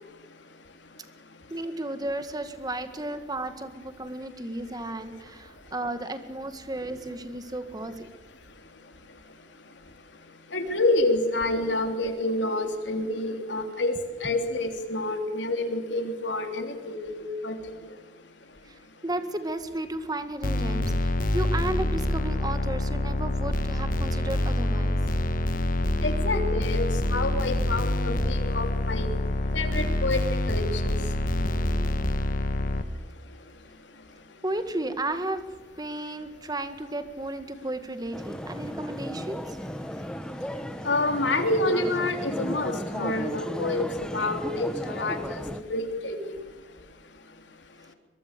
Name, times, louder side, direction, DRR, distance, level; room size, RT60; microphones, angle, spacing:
voice 1, 1.5-8.1 19.0-25.0 34.4-35.4 35.8-39.6, right 1 dB, 20° right, 9 dB, 1.9 m, -33 dB
voice 2, 10.5-13.9 14.2-17.5 26.0-29.1 29.5-30.9 40.8-45.4 45.7-46.4, left 2 dB, 85° left, 6 dB, 3.4 m, -28 dB
sound 1, 20.4-32.8, left 1 dB, 50° left, 1.2 m, -26 dB
sound 2, 38.1-45.6, equal, 5° left, 1.0 m, -35 dB
22.5 x 22.5 x 6.9 m, 1.3 s
head